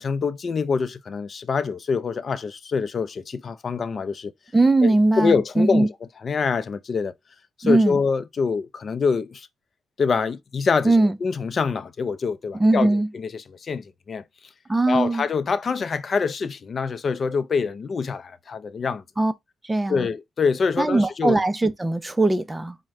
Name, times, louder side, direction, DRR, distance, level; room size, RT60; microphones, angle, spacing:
voice 1, 0.0-4.3 4.8-5.9 6.2-7.1 7.6-9.5 10.0-14.2 14.9-19.0 19.9-21.4, left 5 dB, 45° left, 0.5 m, -25 dB
voice 2, 4.5-5.9 7.6-8.0 10.8-11.1 12.6-13.1 14.7-15.2 19.2-19.3 19.7-20.1 20.8-22.8, right 2 dB, 15° right, 0.5 m, -20 dB
4.4 x 2.1 x 3.6 m
cardioid pair, 90°, 0 cm